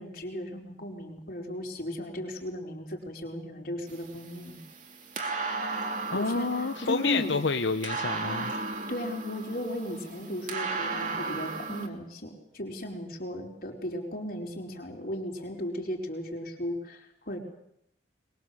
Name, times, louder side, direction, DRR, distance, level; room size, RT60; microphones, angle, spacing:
voice 1, 0.0-4.6 6.1-6.5 6.8-7.3 8.9-17.4, left 1 dB, 55° left, 1 dB, 4.6 m, -36 dB
sound 1, 3.9-11.9, right 3 dB, 45° right, 2.9 m, -35 dB
voice 2, 6.1-8.5, left 4 dB, 80° left, 8 dB, 0.9 m, -29 dB
23.0 x 22.0 x 7.8 m, 0.75 s
head